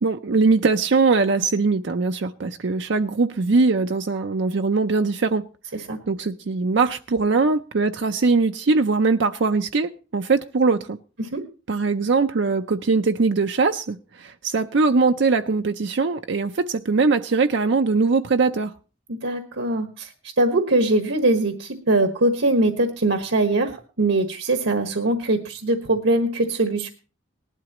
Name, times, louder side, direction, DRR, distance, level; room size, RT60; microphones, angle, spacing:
voice 1, 0.0-5.4 6.1-11.0 11.7-18.7, right 4 dB, 60° right, 0.5 m, -21 dB
voice 2, 19.1-20.1 20.4-26.9, right 2 dB, 80° right, 1.4 m, -22 dB
19.0 x 11.5 x 3.0 m
head